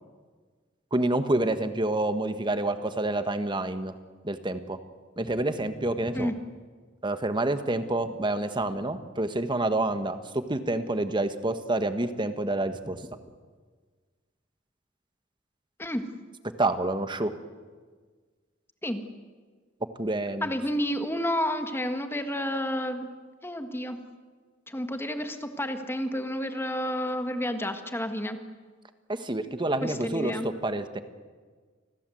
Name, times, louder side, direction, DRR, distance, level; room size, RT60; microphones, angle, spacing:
voice 1, 0.9-3.9 4.2-4.8 5.2-6.3 7.0-13.1 16.6-17.3 20.0-20.5 29.1-31.0, right 2 dB, 25° right, 9 dB, 1.5 m, -28 dB
voice 2, 20.4-23.1 23.4-24.0 24.7-28.4 29.8-30.5, equal, 10° left, 7 dB, 1.6 m, -30 dB
29.0 x 21.0 x 7.9 m, 1.5 s
head